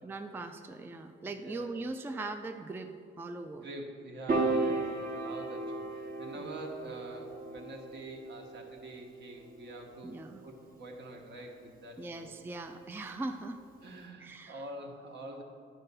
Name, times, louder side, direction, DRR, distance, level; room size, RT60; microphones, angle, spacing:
voice 1, 0.0-3.7 6.4-6.5 10.0-10.4 12.0-13.6 14.2-14.6, right 2 dB, 10° right, 6 dB, 0.4 m, -40 dB
voice 2, 1.3-1.8 3.6-12.3 13.8-15.4, right 1 dB, 60° right, 2 dB, 1.3 m, -46 dB
Piano, 4.3-10.7, right 3 dB, 45° right, 1.2 m, -35 dB
9.8 x 3.7 x 6.8 m, 2.2 s
cardioid pair, 90°, 20 cm